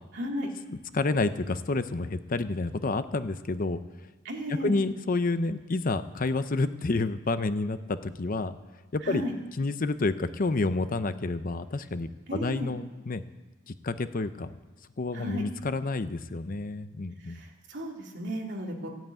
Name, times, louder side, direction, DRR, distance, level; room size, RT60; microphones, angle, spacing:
voice 1, 0.1-0.5 4.2-4.8 9.0-9.3 12.3-12.7 15.1-15.4 17.2-18.9, equal, 60° right, 0 dB, 2.7 m, -34 dB
voice 2, 0.9-3.8 4.6-8.6 8.9-9.2 9.6-13.2 13.7-14.5 15.0-17.4, left 3 dB, 45° left, 12 dB, 0.6 m, -29 dB
14.5 x 9.1 x 9.0 m, 1.3 s
head